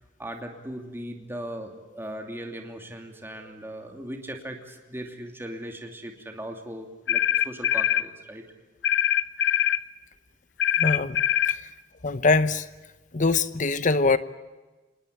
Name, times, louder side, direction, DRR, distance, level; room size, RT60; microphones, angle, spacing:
voice 1, 0.2-8.4, right 1 dB, 15° right, 3 dB, 2.8 m, -38 dB
sound 1, 7.1-8.1 8.8-9.8 10.6-11.6, left 11 dB, 65° left, 0.7 m, -23 dB
voice 2, 10.8-11.2 12.0-12.6 13.1-14.2, left 3 dB, 45° left, 14 dB, 0.9 m, -22 dB
27.0 x 20.0 x 8.4 m, 1.2 s
head